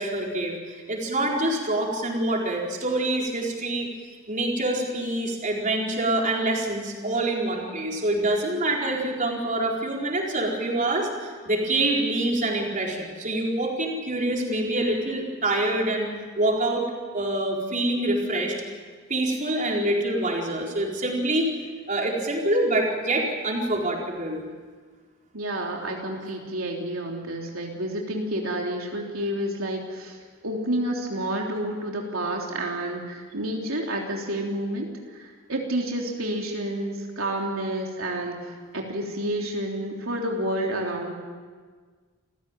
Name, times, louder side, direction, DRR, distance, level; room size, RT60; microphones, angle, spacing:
voice 1, 0.0-3.9 4.3-16.1 16.4-16.8 17.1-18.6 19.1-21.5 21.9-24.4, right 1 dB, 40° right, -1 dB, 4.4 m, -26 dB
voice 2, 25.3-30.2 30.4-41.1, right 1 dB, 85° right, 0 dB, 3.4 m, -29 dB
28.5 x 16.0 x 9.2 m, 1.5 s
head